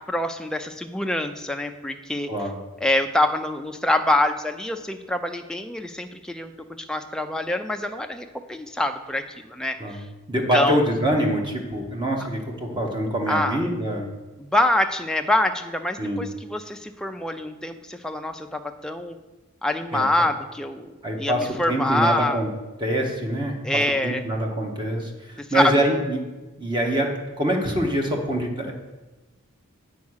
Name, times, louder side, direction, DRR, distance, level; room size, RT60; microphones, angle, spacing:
voice 1, 0.1-2.3 2.8-6.5 6.9-10.1 10.5-10.8 13.3-13.6 14.4-19.2 19.6-20.9 21.2-22.4 23.6-24.2 25.4-25.9, left 1 dB, 5° left, 5 dB, 0.4 m, -25 dB
voice 2, 10.3-14.1 16.0-16.3 19.9-20.1 21.0-22.5 22.8-23.5 24.0-26.2 26.6-27.1 27.4-28.7, right 1 dB, 20° right, 1 dB, 1.0 m, -24 dB
8.4 x 4.8 x 6.2 m, 1.2 s
head